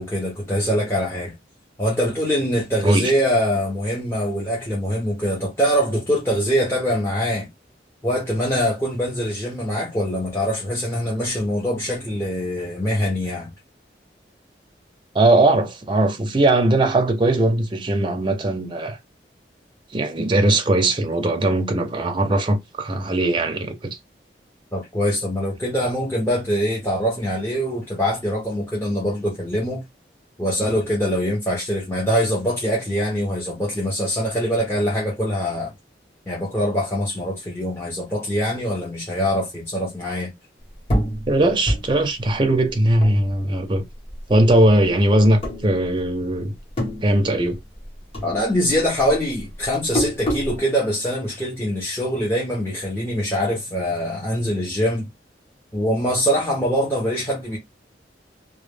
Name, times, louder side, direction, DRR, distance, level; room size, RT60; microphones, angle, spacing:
voice 1, 0.0-1.3 1.8-7.5 8.0-13.5 24.7-29.8 30.4-35.7 36.3-40.3 48.2-55.1 55.7-57.6, equal, 15° left, 0.6 m, -23 dB
voice 2, 15.1-19.0 19.9-24.0 41.3-43.8 44.3-46.5 47.0-47.6, right 1 dB, 25° right, 0.5 m, -19 dB
sound 1, 40.9-43.8 44.1-44.9 45.4-46.3 46.5-47.9 48.1-50.6, equal, 35° left, 0.9 m, -27 dB
2.1 x 2.1 x 3.2 m
head